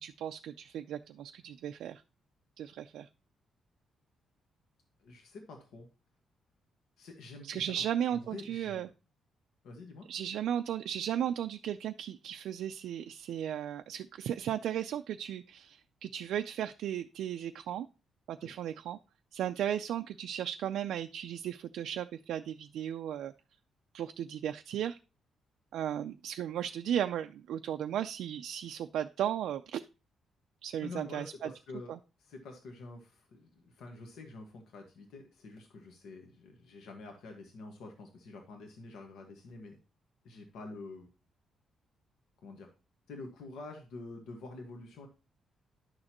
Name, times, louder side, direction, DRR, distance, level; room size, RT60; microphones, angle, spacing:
voice 1, 0.0-2.0 2.6-3.1 7.4-8.9 10.1-17.9 18.3-19.0 19.3-23.3 23.9-25.0 25.7-29.8 30.6-31.5 31.9-32.0, right 10 dB, 75° right, 7 dB, 0.3 m, -35 dB
voice 2, 5.0-5.9 7.0-7.7 8.1-8.9 9.6-10.1 18.4-18.5 30.8-31.9 32.2-39.8 40.2-41.1 42.4-42.7 43.1-45.1, left 3 dB, 85° left, 3 dB, 1.5 m, -47 dB
11.0 x 6.5 x 2.9 m, 0.32 s
cardioid pair, 175°, 0 cm